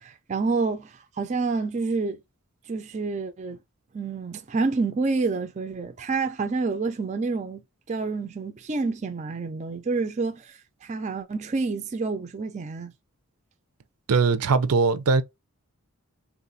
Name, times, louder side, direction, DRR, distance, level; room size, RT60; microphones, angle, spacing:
voice 1, 0.0-2.2 2.7-3.6 3.9-7.6 7.9-12.9, right 4 dB, 30° right, 0.4 m, -28 dB
voice 2, 14.1-15.2, right 4 dB, 85° right, 0.5 m, -20 dB
3.6 x 2.4 x 2.6 m
head